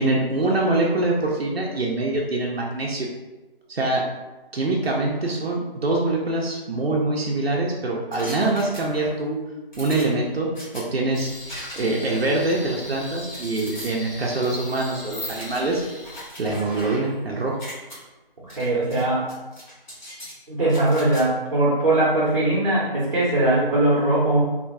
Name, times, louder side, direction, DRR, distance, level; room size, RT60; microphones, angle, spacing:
voice 1, 0.0-3.1 3.7-4.0 4.5-9.4 9.8-11.3 11.8-15.8 16.4-17.6, right 2 dB, 90° right, -2 dB, 0.6 m, -24 dB
sound 1, 8.1-9.2 9.7-10.8 11.5-12.0 12.4-13.9 14.4-14.5 15.2-17.2 17.5-18.0 18.5-19.0 19.3-20.3 20.7-21.2, equal, 50° left, 1.2 m, -40 dB
sound 2, 11.1-16.3, left 1 dB, 65° left, 0.7 m, -38 dB
voice 2, 18.6-19.3 20.5-24.4, right 2 dB, 50° right, -8 dB, 0.8 m, -20 dB
2.7 x 2.2 x 2.6 m, 1.1 s
figure-of-eight pair, 175°, 30 cm